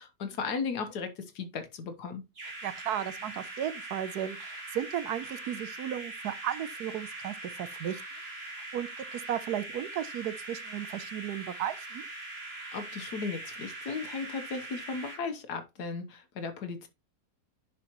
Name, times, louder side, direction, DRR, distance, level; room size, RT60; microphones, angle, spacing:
voice 1, 0.0-2.2 12.7-16.9, left 5 dB, 80° left, 1.6 m, -36 dB
sound 1, 2.3-15.2, right 2 dB, 40° right, 2.0 m, -42 dB
voice 2, 2.6-8.0 8.7-12.0, right 10 dB, 75° right, 1.2 m, -35 dB
10.5 x 5.1 x 3.0 m
omnidirectional pair, 1.7 m